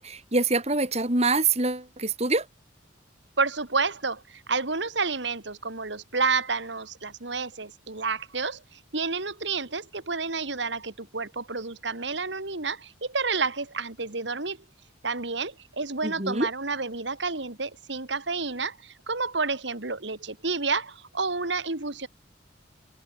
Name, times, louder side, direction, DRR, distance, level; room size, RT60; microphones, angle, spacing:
voice 1, 0.0-2.4 16.0-16.5, right 3 dB, 35° right, 4.0 m, -25 dB
voice 2, 3.4-14.6 15.0-22.1, right 4 dB, 65° right, 2.4 m, -30 dB
head